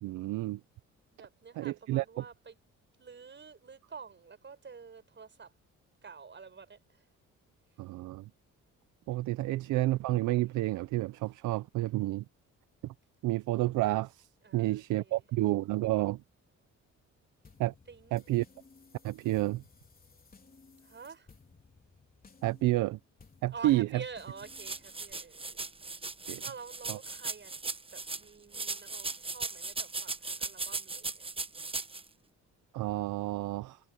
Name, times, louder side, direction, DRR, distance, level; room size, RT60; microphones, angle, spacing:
voice 1, 0.0-0.6 1.6-2.2 7.8-8.3 9.1-12.3 12.8-12.9 13.2-14.3 14.5-16.2 17.6-17.7 18.1-18.4 19.0-19.6 22.4-23.0 23.4-24.0 26.3-26.4 26.9-27.0 32.7-33.8, right 17 dB, 90° right, 0.7 m, -30 dB
voice 2, 1.1-2.5 3.0-5.5 6.0-6.8 9.4-9.7 14.4-15.2 17.9-18.2 20.8-21.3 23.5-25.7 26.4-31.2, right 5 dB, 40° right, 6.8 m, -48 dB
sound 1, 17.4-25.1, left 4 dB, 30° left, 3.8 m, -59 dB
sound 2, 24.4-28.2 28.5-32.0, right 3 dB, 20° right, 1.2 m, -38 dB
cardioid pair, 90°, 30 cm